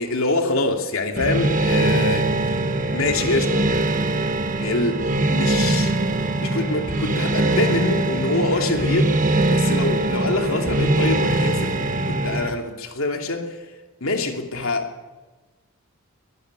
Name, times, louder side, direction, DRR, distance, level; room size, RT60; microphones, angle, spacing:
voice 1, 0.0-3.6 4.6-5.0 5.3-5.9 6.4-9.2 9.5-13.6 14.0-14.9, left 2 dB, 65° left, 2.9 m, -25 dB
sound 1, 1.2-12.5, right 2 dB, 35° right, 1.5 m, -22 dB
23.0 x 13.5 x 9.8 m
head